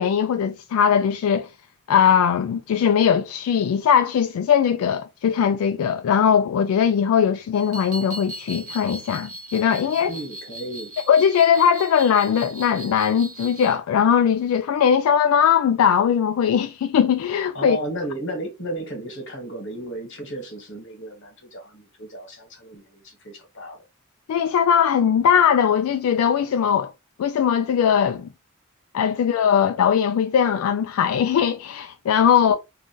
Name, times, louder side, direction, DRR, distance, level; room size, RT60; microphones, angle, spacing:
voice 1, 0.0-1.5 1.9-10.1 11.1-17.8 24.3-26.9 27.2-28.3 28.9-32.6, left 8 dB, 85° left, 0.3 m, -20 dB
sound 1, 7.5-13.8, right 1 dB, 85° right, 0.9 m, -38 dB
voice 2, 10.1-10.9 17.5-23.8 32.3-32.6, right 1 dB, 60° left, 1.2 m, -34 dB
2.5 x 2.5 x 3.7 m
head